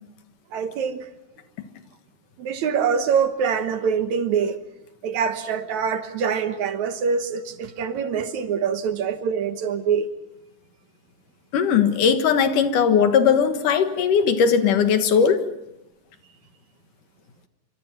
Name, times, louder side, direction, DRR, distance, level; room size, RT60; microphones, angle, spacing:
voice 1, 0.5-1.1 2.4-4.6 5.0-10.1, right 6 dB, 65° right, 2.4 m, -24 dB
voice 2, 11.5-15.4, left 7 dB, 75° left, 3.0 m, -19 dB
28.0 x 25.0 x 6.0 m
omnidirectional pair, 3.8 m